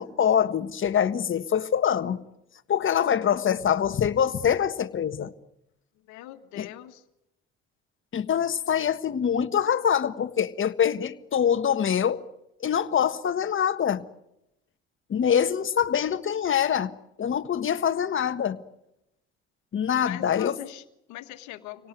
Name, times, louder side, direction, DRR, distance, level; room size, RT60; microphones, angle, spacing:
voice 1, 0.0-2.2 2.7-5.3 6.6-6.7 8.1-12.2 12.6-14.0 15.1-18.6 19.7-20.6, left 8 dB, 40° left, 1.5 m, -24 dB
voice 2, 6.1-7.0 20.0-21.9, left 15 dB, 70° left, 1.7 m, -41 dB
27.0 x 18.0 x 9.2 m
hypercardioid pair, 65°, 30 cm